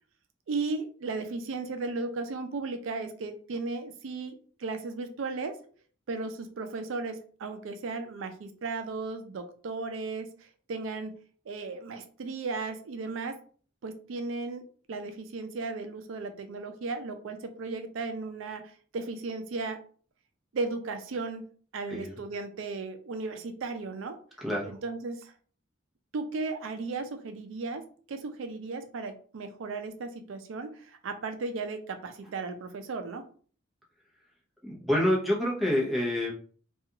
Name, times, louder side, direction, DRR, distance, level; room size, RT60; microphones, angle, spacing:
voice 1, 0.5-5.6 6.1-11.2 11.5-13.4 13.8-19.8 20.5-21.5 21.7-24.2 24.7-25.3 26.1-33.2, right 3 dB, 80° right, 7 dB, 0.4 m, -35 dB
voice 2, 21.9-22.2 24.4-24.7 34.6-36.3, left 1 dB, ahead, -5 dB, 0.7 m, -27 dB
2.4 x 2.3 x 2.8 m, 0.43 s
head